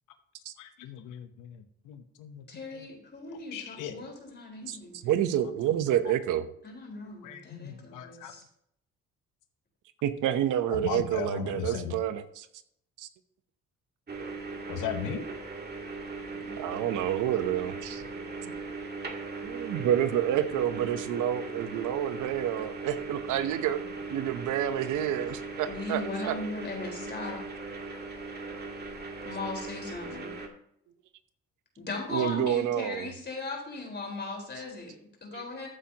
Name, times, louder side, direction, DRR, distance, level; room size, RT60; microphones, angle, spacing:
voice 1, 0.6-2.4 3.5-3.9 7.2-8.3 10.7-11.9 14.7-15.2 16.5-16.6 18.2-18.3, left 9 dB, 90° left, 7 dB, 1.0 m, -37 dB
voice 2, 2.5-5.1 6.6-8.4 25.7-27.4 29.2-30.3 31.8-35.7, left 3 dB, 35° left, 1 dB, 4.3 m, -38 dB
voice 3, 5.0-6.5 10.0-12.5 13.0-13.1 16.3-18.0 18.4-18.5 19.4-23.8 24.1-26.3 32.1-33.1 35.3-35.4, right 11 dB, 85° right, 11 dB, 0.9 m, -29 dB
sound 1, 14.1-30.5, right 3 dB, 35° right, 2.0 m, -39 dB
14.0 x 8.5 x 2.9 m, 0.72 s
cardioid pair, 90°, 30 cm